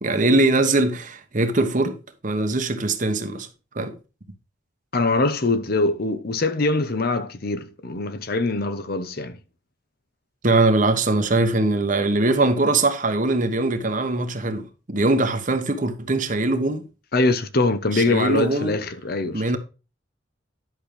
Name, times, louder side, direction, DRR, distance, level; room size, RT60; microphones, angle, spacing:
voice 1, 0.0-2.0 2.2-3.5 3.7-3.9 10.4-16.8 17.9-18.8 19.3-19.6, right 2 dB, 40° right, 1.2 m, -21 dB
voice 2, 4.9-9.4 17.1-19.4, left 2 dB, 50° left, 0.9 m, -23 dB
11.0 x 6.4 x 3.3 m
head